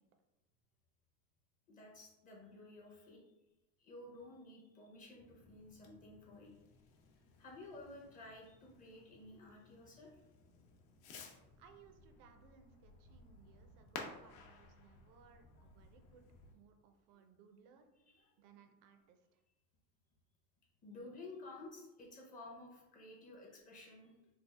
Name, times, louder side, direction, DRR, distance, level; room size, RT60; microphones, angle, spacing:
voice 1, 1.7-3.2 3.8-6.5 7.4-10.2 17.1-17.2 17.9-18.3 20.8-24.3, left 2 dB, 20° left, -2 dB, 0.6 m, -54 dB
Fireworks, 5.1-16.5, left 4 dB, 60° left, 0.7 m, -56 dB
voice 2, 11.6-16.3 16.5-17.8 18.4-19.4, right 6 dB, 55° right, 6 dB, 0.5 m, -64 dB
3.5 x 2.3 x 3.2 m, 0.97 s
cardioid pair, 160°, 39 cm